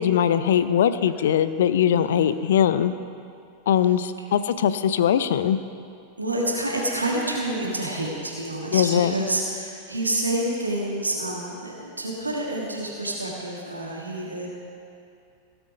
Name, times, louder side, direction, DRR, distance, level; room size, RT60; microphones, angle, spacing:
voice 1, 0.0-2.9 3.7-5.6 8.7-9.1, left 9 dB, 60° left, 13 dB, 0.5 m, -21 dB
voice 2, 2.0-2.3 6.2-14.5, right 1 dB, 80° right, -2 dB, 1.6 m, -28 dB
17.0 x 7.9 x 5.1 m, 2.5 s
figure-of-eight pair, 90°, 0 cm